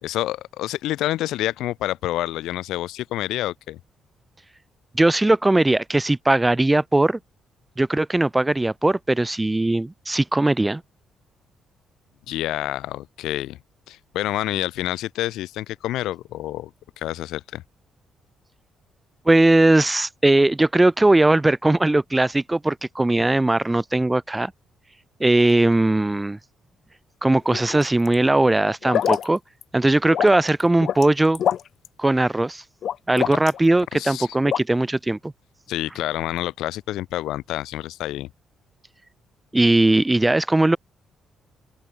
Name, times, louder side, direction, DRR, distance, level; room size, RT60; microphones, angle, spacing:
voice 1, 0.0-3.8 12.3-13.6 13.9-16.7 17.0-17.6 33.9-34.3 35.7-38.3, left 15 dB, 90° left, 2.8 m, -28 dB
voice 2, 4.9-7.2 7.8-10.8 19.3-24.5 25.2-26.4 27.2-29.4 29.7-31.4 32.0-32.6 33.1-35.3 39.5-40.8, right 2 dB, 15° right, 0.5 m, -19 dB
sound 1, 27.5-28.2 28.8-29.3 29.6-29.7 30.1-31.1 31.4-31.9 32.8-33.6 34.5-34.6, left 9 dB, 65° left, 0.6 m, -24 dB
open air
cardioid pair, 90°, 0 cm